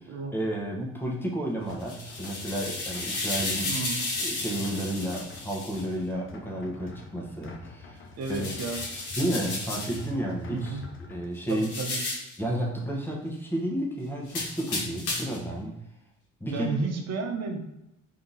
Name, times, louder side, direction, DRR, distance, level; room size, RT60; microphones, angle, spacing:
voice 1, 0.0-3.7 4.2-8.5 9.2-10.8 11.1-11.7 12.4-15.8 16.4-16.8, right 1 dB, 5° left, -2 dB, 1.0 m, -32 dB
sound 1, 1.4-11.3, left 4 dB, 40° left, 0.6 m, -46 dB
sound 2, 1.7-5.8 8.2-10.1 11.5-12.4 14.3-15.5, left 2 dB, 85° left, 1.3 m, -33 dB
voice 2, 3.7-4.0 8.2-8.8 10.5-10.8 11.5-12.0 16.5-17.6, right 4 dB, 60° right, 3 dB, 0.9 m, -32 dB
3.5 x 2.8 x 4.0 m, 0.87 s
cardioid pair, 90°, 30 cm